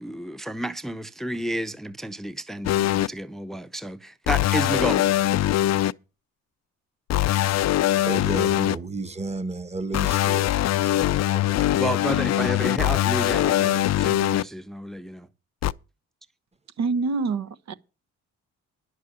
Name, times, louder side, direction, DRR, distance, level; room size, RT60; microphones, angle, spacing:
voice 1, 0.0-5.1 11.8-15.3, right 1 dB, ahead, 0.8 m, -31 dB
sound 1, 2.6-3.1 4.3-5.9 7.1-8.7 9.9-14.4 15.6-15.7, left 13 dB, 60° left, 0.5 m, -22 dB
voice 2, 8.0-11.6, right 3 dB, 20° right, 1.2 m, -33 dB
voice 3, 16.8-17.7, right 4 dB, 60° right, 1.0 m, -26 dB
10.5 x 6.5 x 8.6 m
cardioid pair, 90°, 30 cm